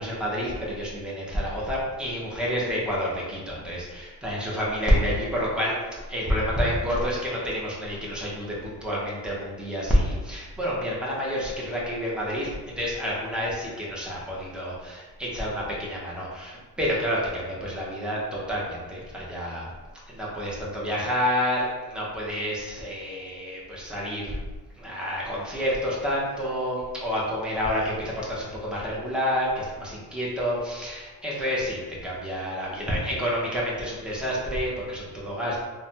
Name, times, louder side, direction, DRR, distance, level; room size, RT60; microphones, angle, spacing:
voice 1, 0.0-5.8 6.1-19.7 20.1-24.3 24.8-35.7, equal, ahead, -6 dB, 0.6 m, -28 dB
3.1 x 2.2 x 2.7 m, 1.3 s
cardioid pair, 130°, 38 cm